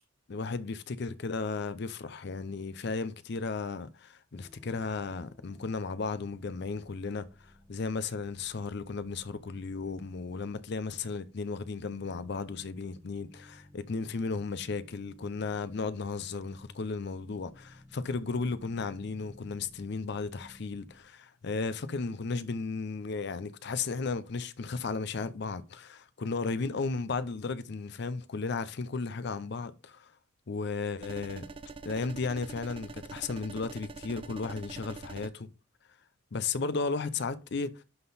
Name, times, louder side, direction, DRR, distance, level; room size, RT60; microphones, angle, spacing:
voice 1, 0.3-7.3 7.7-30.1 30.5-31.4 31.8-35.5 36.3-37.7, left 4 dB, 55° left, 0.5 m, -34 dB
sound 1, 4.3-21.0, left 1 dB, 10° right, 1.1 m, -57 dB
sound 2, 31.0-35.3, right 4 dB, 25° right, 0.3 m, -45 dB
11.0 x 3.7 x 4.0 m
head